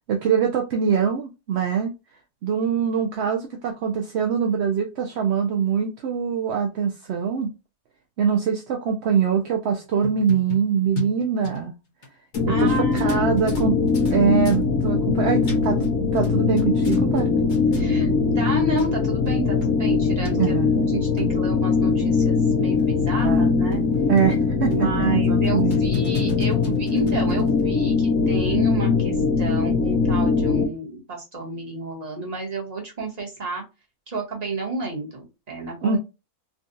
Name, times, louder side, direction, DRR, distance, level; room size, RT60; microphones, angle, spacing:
voice 1, 0.1-1.9 2.4-7.5 8.2-11.7 12.5-13.8 14.1-15.8 16.1-17.3 20.4-20.7 23.1-23.5 24.1-25.7 35.8-36.0, right 7 dB, 65° right, 3 dB, 0.7 m, -23 dB
sound 1, 9.8-12.1 12.3-12.4 12.9-14.1 14.4-14.6 15.2-15.9 16.2-17.2 17.5-17.8 18.5-18.6 18.8-18.9 19.2-19.3 19.6-19.7 20.2-20.3 20.9-21.3 21.8-21.9 22.2-22.3 22.8-22.9 23.2-23.3 23.7-24.4 24.7-25.0 25.4-27.6, left 4 dB, 45° left, 0.7 m, -36 dB
sound 2, 12.3-30.7, left 4 dB, 75° left, 1.2 m, -21 dB
voice 2, 12.5-13.4 17.7-23.8 24.7-33.6 34.1-36.0, right 2 dB, 30° right, -2 dB, 1.2 m, -31 dB
sound 3, 16.5-22.2, left 1 dB, 10° right, 0.3 m, -39 dB
3.7 x 2.3 x 2.6 m, 0.27 s
omnidirectional pair, 1.5 m